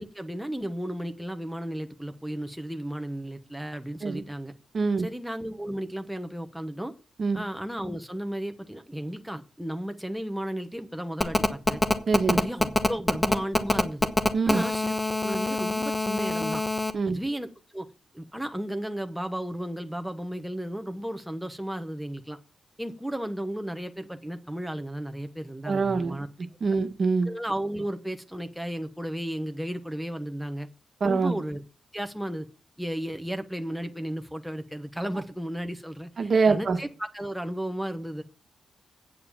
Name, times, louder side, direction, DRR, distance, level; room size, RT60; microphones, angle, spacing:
voice 1, 0.0-4.5 5.0-6.9 7.3-11.8 12.3-14.1 14.4-16.6 17.1-17.9 18.1-22.4 22.8-26.3 27.2-30.7 31.0-31.6 31.9-32.5 32.8-38.2, right 1 dB, ahead, 6 dB, 1.0 m, -34 dB
voice 2, 4.7-5.1 7.2-7.4 12.1-12.4 14.3-14.6 16.9-17.2 25.7-26.2 26.6-27.3 31.0-31.4 36.2-36.8, right 4 dB, 55° right, 6 dB, 1.4 m, -24 dB
Telephone, 11.2-16.9, left 2 dB, 20° left, 1.1 m, -24 dB
8.8 x 6.7 x 7.2 m, 0.37 s
cardioid pair, 90°, 0 cm